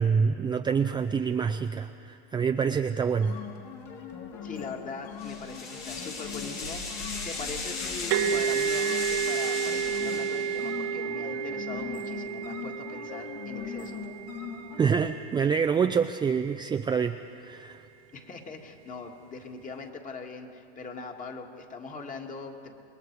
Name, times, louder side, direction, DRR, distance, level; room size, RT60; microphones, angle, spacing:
voice 1, 0.0-3.4 14.8-17.2 17.4-17.8, right 6 dB, 15° right, 6 dB, 0.5 m, -26 dB
sound 1, 3.2-15.0, left 7 dB, 50° left, 3.2 m, -41 dB
voice 2, 4.4-14.0 18.1-22.7, left 4 dB, 25° left, 3 dB, 2.3 m, -41 dB
sound 2, 5.2-10.8, left 3 dB, 90° left, 5.4 m, -36 dB
sound 3, 8.1-15.6, right 8 dB, 60° right, 1.2 m, -31 dB
28.0 x 21.0 x 4.8 m, 2.6 s
hypercardioid pair, 110°, 30 cm